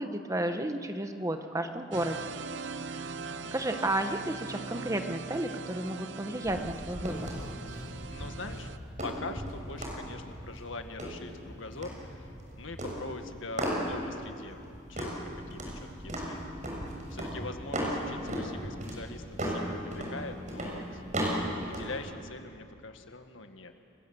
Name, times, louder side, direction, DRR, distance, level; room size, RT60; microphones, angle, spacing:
voice 1, 0.0-2.4 2.9-3.1 3.5-7.3, right 1 dB, 15° right, 6 dB, 1.2 m, -32 dB
sound 1, 1.9-8.8, right 5 dB, 60° right, 0.8 m, -41 dB
sound 2, 6.4-22.0, equal, 40° right, 6.4 m, -37 dB
voice 2, 8.1-8.7 9.0-14.6 14.9-21.4 21.7-23.7, left 3 dB, 80° left, 6 dB, 1.7 m, -43 dB
29.5 x 20.5 x 8.0 m, 2.6 s
head